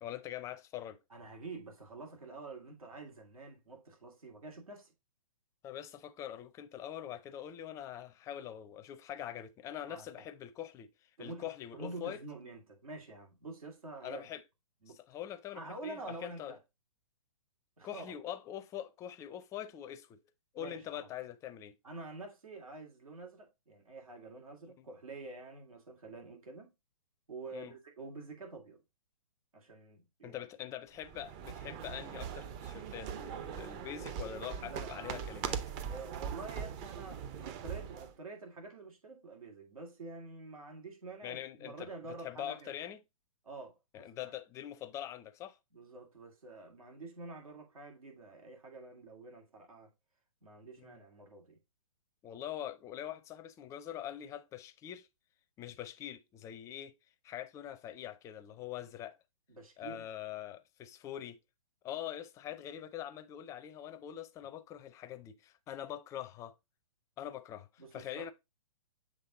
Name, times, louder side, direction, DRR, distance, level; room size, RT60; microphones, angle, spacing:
voice 1, 0.0-1.0 5.6-10.9 11.2-12.2 14.0-14.4 15.1-16.6 17.8-20.2 20.5-21.8 24.8-24.9 27.5-27.7 30.2-35.6 41.2-43.0 43.9-45.6 50.8-51.0 52.2-55.1 55.6-56.9 57.2-59.2 59.8-61.4 61.8-66.5 67.2-68.3, left 11 dB, 15° left, 0.5 m, -44 dB
voice 2, 1.1-4.9 9.9-10.2 11.2-14.2 14.8-15.0 15.5-16.6 17.8-18.1 20.6-21.1 21.8-26.7 27.3-28.8 29.5-30.4 34.7-35.3 35.9-42.7 43.4-43.8 44.2-44.3 45.7-49.9 50.4-51.6 59.5-60.1 67.8-68.3, right 3 dB, 85° right, 2.5 m, -48 dB
sound 1, 31.0-38.1, right 8 dB, 30° right, 0.6 m, -41 dB
7.5 x 3.3 x 3.9 m
hypercardioid pair, 135°, 18 cm